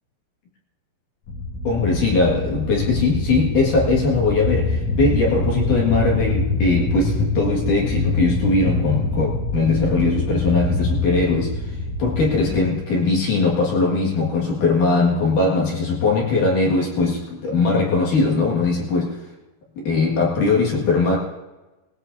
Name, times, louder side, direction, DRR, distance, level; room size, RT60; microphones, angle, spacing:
sound 1, 1.3-12.7, left 2 dB, 75° left, 1.5 m, -25 dB
voice 1, 1.6-11.6 12.0-19.2 19.8-21.2, left 3 dB, 50° left, -3 dB, 2.9 m, -20 dB
20.0 x 19.0 x 2.7 m, 1.1 s
omnidirectional pair, 5.5 m